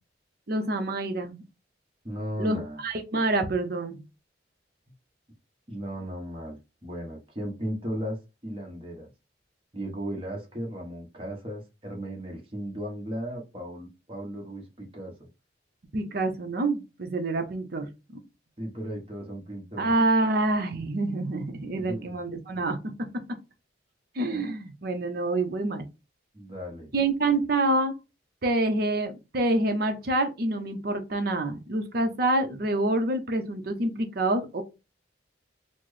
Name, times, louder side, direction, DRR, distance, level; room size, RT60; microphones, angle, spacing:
voice 1, 0.5-1.4 2.4-2.6 2.8-4.0 15.9-17.9 19.8-23.1 24.2-25.9 26.9-27.9 28.4-34.6, right 2 dB, 55° right, 0.7 m, -27 dB
voice 2, 2.0-2.8 5.7-9.1 9.7-15.3 18.6-19.9 21.9-22.2 26.3-26.9, equal, 30° right, 1.1 m, -36 dB
4.2 x 2.1 x 3.1 m
head